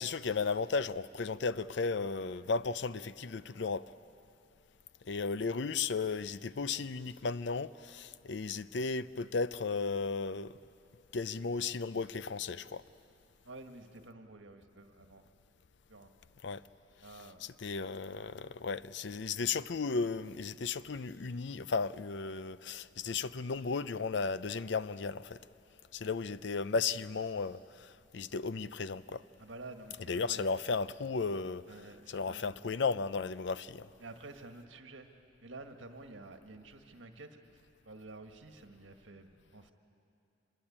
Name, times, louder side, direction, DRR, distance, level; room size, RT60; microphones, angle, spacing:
voice 1, 0.0-3.9 5.0-10.6 11.1-12.8 16.4-16.6 17.4-25.4 25.9-29.2 30.1-31.6 32.1-33.9, left 4 dB, 60° left, 0.5 m, -35 dB
voice 2, 13.4-15.3 15.9-16.1 17.0-17.4 29.4-30.6 31.7-32.5 34.0-35.1 35.4-39.7, right 2 dB, 75° right, 1.7 m, -50 dB
25.5 x 21.0 x 8.7 m
head